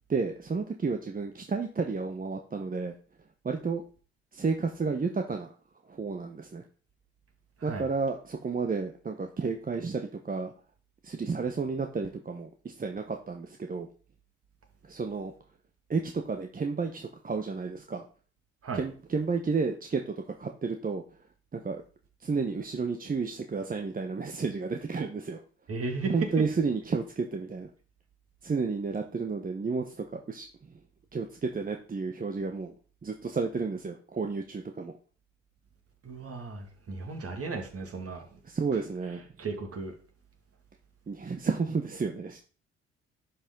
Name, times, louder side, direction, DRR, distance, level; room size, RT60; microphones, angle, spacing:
voice 1, 0.1-2.9 3.4-3.8 4.3-5.5 5.9-6.6 7.6-10.5 11.0-13.9 14.8-15.3 15.9-18.1 18.7-21.0 21.5-21.8 22.2-25.4 26.1-27.7 28.4-30.7 31.1-32.7 33.0-34.9 38.4-39.2 41.1-42.4, right 4 dB, 25° right, 4 dB, 1.1 m, -31 dB
voice 2, 25.7-26.2 36.0-38.4 39.4-39.9, right 3 dB, 45° right, 3 dB, 2.5 m, -36 dB
11.0 x 5.7 x 3.9 m, 0.39 s
hypercardioid pair, 50°, 32 cm